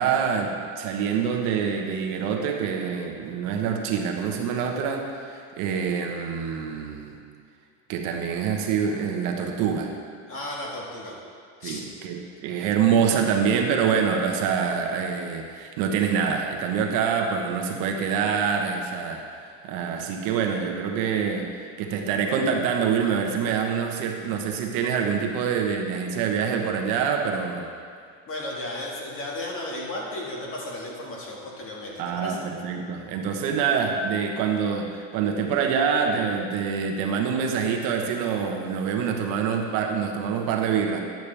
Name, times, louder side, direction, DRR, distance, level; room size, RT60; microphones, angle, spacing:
voice 1, 0.0-7.2 7.9-9.9 11.6-21.5 21.8-27.7 32.0-41.0, right 6 dB, 55° right, 2 dB, 1.1 m, -26 dB
voice 2, 10.3-11.1 11.6-11.8 12.6-12.7 28.3-32.4, left 1 dB, 35° left, -3 dB, 1.9 m, -34 dB
10.5 x 8.3 x 3.4 m, 2.2 s
supercardioid pair, 130°, 39 cm